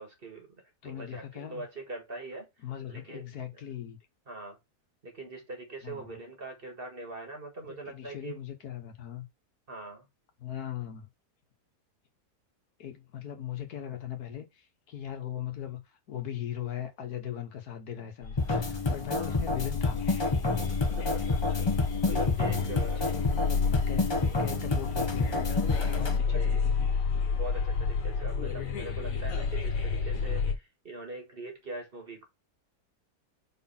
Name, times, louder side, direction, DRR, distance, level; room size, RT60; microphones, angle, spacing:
voice 1, 0.0-2.5 2.9-3.3 4.3-4.6 5.0-8.4 9.7-10.1 19.1-19.4 20.7-23.1 26.2-26.6 27.3-32.3, right 2 dB, 35° right, 1.7 m, -42 dB
voice 2, 0.8-1.6 2.6-4.0 5.8-6.2 7.8-9.3 10.4-11.1 12.8-20.1 22.2-25.5 25.9-26.9, left 10 dB, 75° left, 1.6 m, -39 dB
sound 1, 18.2-30.5, left 5 dB, 60° left, 1.7 m, -31 dB
sound 2, 18.4-26.2, left 3 dB, 25° left, 0.6 m, -29 dB
4.8 x 4.2 x 5.8 m
omnidirectional pair, 1.7 m